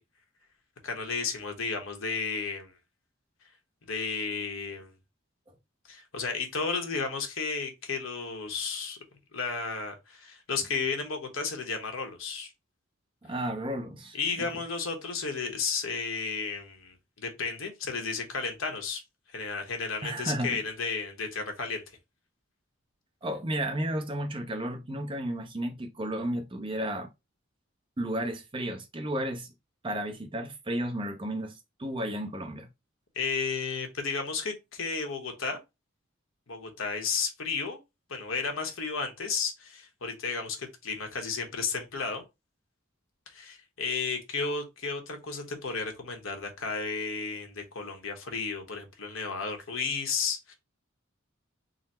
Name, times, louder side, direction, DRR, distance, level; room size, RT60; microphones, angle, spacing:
voice 1, 0.8-2.7 3.9-4.9 5.9-9.0 9.3-12.5 14.1-19.0 19.3-21.8 33.1-35.6 36.5-37.8 38.1-42.2 43.3-50.5, left 5 dB, 70° left, 1.0 m, -33 dB
voice 2, 13.2-14.2 20.0-20.6 23.2-27.1 28.0-29.5 29.8-32.7, right 1 dB, 25° right, 0.6 m, -33 dB
3.9 x 2.0 x 4.1 m
head